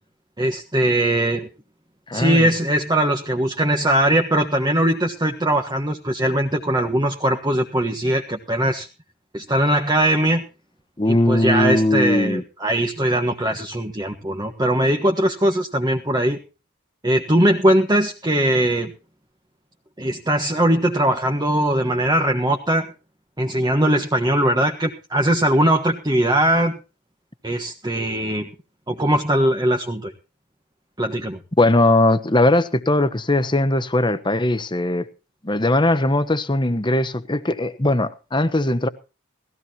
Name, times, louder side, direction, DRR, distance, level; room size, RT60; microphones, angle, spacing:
voice 1, 0.4-1.5 2.1-8.9 9.3-10.4 11.1-16.4 17.0-18.9 20.0-22.9 23.4-26.8 27.4-28.5 28.9-30.1 31.0-31.4, right 1 dB, 20° right, 1.3 m, -20 dB
voice 2, 2.1-2.5 11.0-12.4 31.6-35.1 35.4-38.9, left 1 dB, 20° left, 1.1 m, -19 dB
18.5 x 15.5 x 2.9 m
head